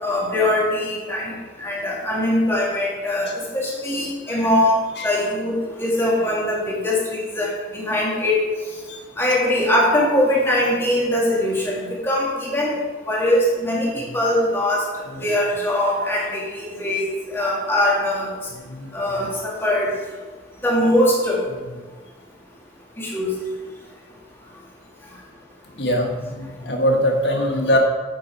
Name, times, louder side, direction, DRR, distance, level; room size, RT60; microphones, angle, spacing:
voice 1, 0.0-8.4 9.2-12.8 13.1-14.9 15.2-18.3 18.9-19.9 20.6-21.4 23.0-23.3, left 1 dB, 15° left, -4 dB, 2.1 m, -21 dB
voice 2, 18.5-18.9 21.5-21.6 25.7-27.8, equal, 65° left, 1 dB, 1.6 m, -23 dB
8.6 x 7.2 x 4.7 m, 1.4 s
head